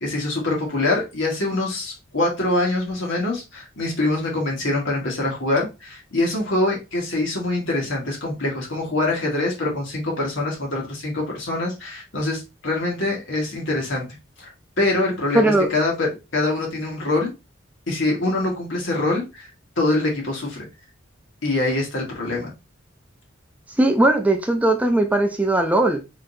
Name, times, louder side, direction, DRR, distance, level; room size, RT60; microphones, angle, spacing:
voice 1, 0.0-14.1 14.4-14.5 14.8-17.3 17.9-19.5 19.8-20.7 21.4-22.5, left 2 dB, 70° left, 1.7 m, -24 dB
voice 2, 15.3-15.7 23.8-26.0, right 1 dB, 10° right, 0.4 m, -18 dB
4.3 x 3.8 x 2.6 m
head